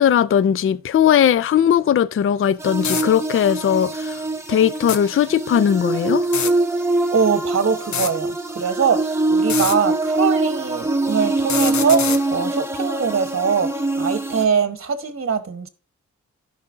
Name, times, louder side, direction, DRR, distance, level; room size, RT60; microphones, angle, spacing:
voice 1, 0.0-6.3, left 9 dB, 45° left, 0.4 m, -18 dB
sound 1, 2.4-2.5 2.8-3.1 4.8-5.0 6.2-6.5 7.8-8.1 9.4-9.8 11.4-12.2, left 7 dB, 70° left, 0.8 m, -25 dB
sound 2, 2.6-14.4, right 2 dB, 10° right, 1.1 m, -23 dB
voice 2, 7.1-15.7, right 6 dB, 45° right, 1.1 m, -22 dB
13.5 x 5.6 x 2.5 m
cardioid pair, 65°, 30 cm